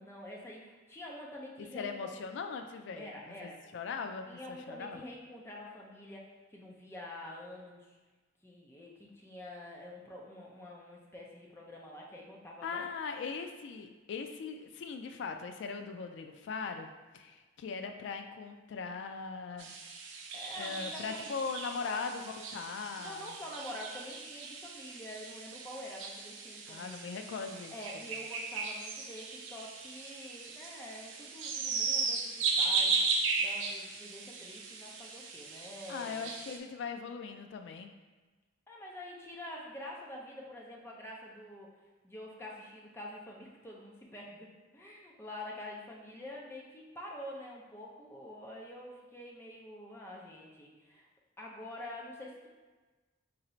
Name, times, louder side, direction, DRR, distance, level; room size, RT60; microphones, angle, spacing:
voice 1, 0.0-2.2 2.9-3.6 4.3-8.0 8.4-12.9 20.3-21.4 21.7-22.0 23.0-27.0 27.7-33.0 33.4-36.3 38.7-41.7 42.0-51.1 51.4-52.5, left 1 dB, 15° left, -2 dB, 0.5 m, -47 dB
voice 2, 1.7-5.0 12.6-19.8 20.5-23.3 26.7-27.7 28.0-28.1 35.9-37.9, left 5 dB, 65° left, 6 dB, 0.3 m, -40 dB
sound 1, 19.6-36.6, right 4 dB, 80° right, 0.5 m, -36 dB
2.8 x 2.7 x 4.2 m, 1.3 s
head